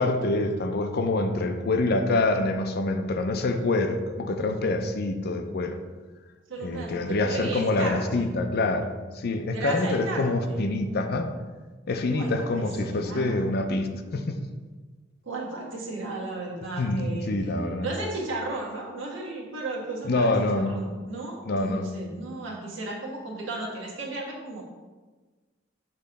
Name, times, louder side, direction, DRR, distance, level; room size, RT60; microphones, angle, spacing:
voice 1, 0.0-5.8 6.6-11.3 11.9-14.4 16.8-17.9 20.0-20.8 21.5-21.9, left 2 dB, 55° left, 6 dB, 0.5 m, -26 dB
voice 2, 6.5-8.2 9.5-10.6 12.1-13.5 15.2-17.3 17.8-24.6, right 2 dB, 70° right, -3 dB, 1.5 m, -35 dB
6.6 x 3.1 x 5.2 m, 1.3 s
head